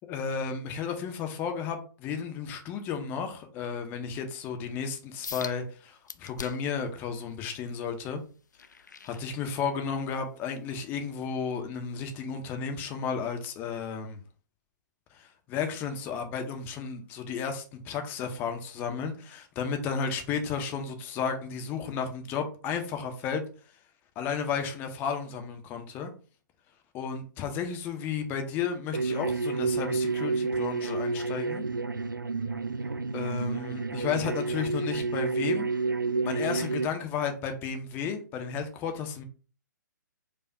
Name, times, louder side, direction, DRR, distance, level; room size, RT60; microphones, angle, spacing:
voice 1, 0.1-8.2 9.0-14.2 15.1-23.4 24.2-26.1 26.9-31.6 33.1-35.7 36.2-39.2, left 6 dB, 20° left, 0.6 m, -33 dB
sound 1, 5.2-5.6 6.1-6.8 7.3-9.8 10.3-10.6 11.1-11.2, left 6 dB, 65° left, 0.4 m, -43 dB
sound 2, 28.9-36.8, right 4 dB, 80° right, 0.4 m, -30 dB
4.7 x 2.4 x 4.5 m
figure-of-eight pair, 125°, 11 cm